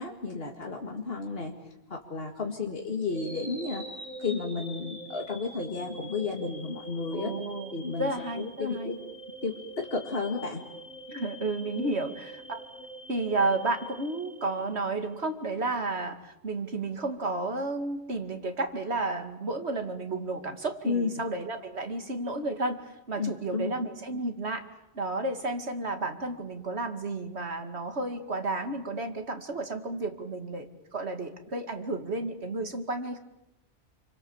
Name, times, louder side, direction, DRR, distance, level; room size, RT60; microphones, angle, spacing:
voice 1, 0.0-1.5 1.9-3.8 4.2-7.3 7.7-8.9 9.4-10.6 11.7-11.9 20.8-21.1 23.2-23.7, left 4 dB, 60° left, 1 dB, 2.5 m, -32 dB
sound 1, 3.1-15.2, right 1 dB, 10° left, 7.8 m, -44 dB
voice 2, 7.1-7.7 8.0-9.0 11.1-12.6 13.1-24.7 24.9-33.2, right 2 dB, 80° right, 6 dB, 2.6 m, -32 dB
28.0 x 25.0 x 7.3 m, 0.91 s
omnidirectional pair, 1.1 m